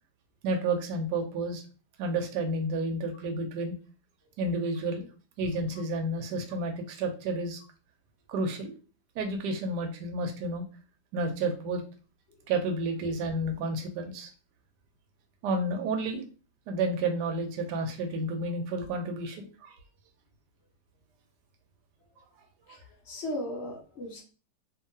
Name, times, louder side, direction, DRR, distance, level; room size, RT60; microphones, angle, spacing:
voice 1, 0.4-1.6 2.0-3.7 4.4-5.1 5.4-7.6 8.3-8.7 9.2-10.6 11.1-11.8 12.5-14.3 15.4-16.2 16.7-19.7 22.7-22.8, right 2 dB, 70° right, 4 dB, 1.2 m, -31 dB
voice 2, 22.7-24.2, left 1 dB, 85° left, -1 dB, 0.5 m, -37 dB
2.8 x 2.6 x 2.6 m, 0.36 s
omnidirectional pair, 2.0 m